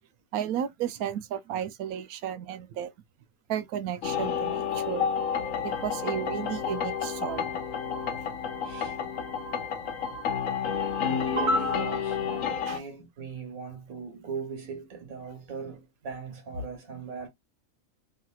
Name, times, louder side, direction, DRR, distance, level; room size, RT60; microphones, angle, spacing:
voice 1, 0.3-2.9 3.5-5.1 5.6-7.6 12.7-12.8, right 10 dB, 90° right, 1.1 m, -33 dB
sound 1, 4.0-12.8, left 7 dB, 70° left, 1.1 m, -30 dB
voice 2, 8.6-9.0 11.0-17.3, right 2 dB, 70° right, 1.7 m, -35 dB
3.1 x 2.9 x 2.2 m
omnidirectional pair, 1.5 m